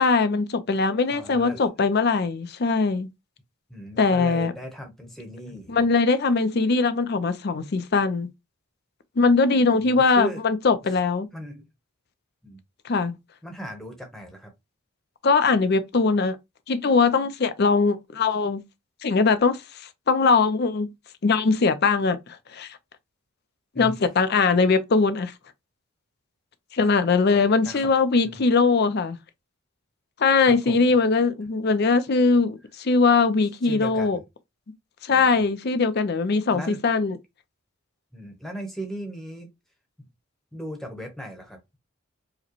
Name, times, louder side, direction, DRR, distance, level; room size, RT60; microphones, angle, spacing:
voice 1, 0.0-3.1 4.0-4.5 5.7-8.3 9.2-11.3 12.8-13.2 15.2-16.4 16.7-18.6 19.0-20.9 21.2-22.8 23.8-25.3 26.7-29.2 30.2-34.2 35.0-37.2, left 4 dB, 45° left, 0.4 m, -21 dB
voice 2, 1.1-1.6 3.7-5.9 9.7-10.4 11.3-11.7 12.4-12.6 13.4-14.5 23.7-24.0 26.8-27.0 27.3-27.9 28.2-28.4 30.4-30.9 33.6-34.2 35.1-35.5 36.5-36.8 38.1-39.5 40.0-40.1 40.5-41.6, equal, ahead, 0.9 m, -37 dB
4.8 x 2.1 x 3.0 m
head